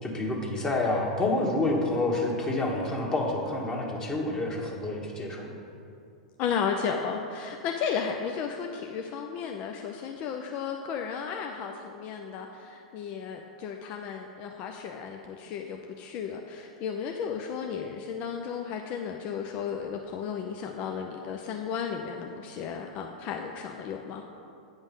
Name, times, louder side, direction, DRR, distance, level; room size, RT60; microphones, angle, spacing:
voice 1, 0.0-5.5, left 2 dB, 20° left, -1 dB, 1.6 m, -28 dB
voice 2, 6.4-24.2, left 6 dB, 45° left, 3 dB, 0.6 m, -34 dB
8.9 x 5.3 x 5.4 m, 2.5 s
hypercardioid pair, 95°, 4 cm